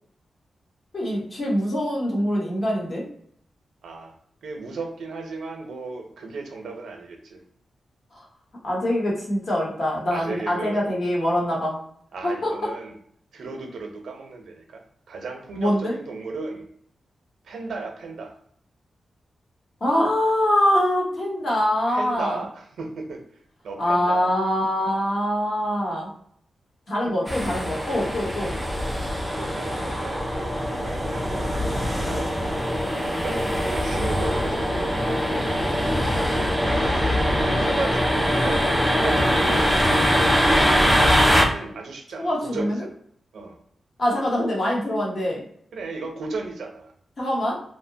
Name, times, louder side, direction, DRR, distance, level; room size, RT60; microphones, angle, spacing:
voice 1, 0.9-3.0 8.6-11.8 12.2-12.7 15.6-15.9 19.8-22.4 23.8-26.1 26.9-28.5 35.6-35.9 42.2-42.8 44.0-45.4 47.2-47.5, left 1 dB, 45° left, -3 dB, 0.9 m, -24 dB
voice 2, 3.8-4.1 4.4-7.4 10.1-10.8 12.1-13.0 13.3-16.6 17.4-18.3 21.9-23.2 23.6-24.3 27.0-27.1 29.4-30.3 30.7-31.5 32.1-32.6 33.2-34.8 37.4-39.7 40.5-41.0 41.5-42.9 43.3-43.6 45.7-46.9, right 3 dB, 90° right, 3 dB, 0.5 m, -35 dB
sound 1, 27.3-41.4, equal, ahead, 0.4 m, -22 dB
2.7 x 2.1 x 2.6 m, 0.65 s
wide cardioid pair, 165°, 0 cm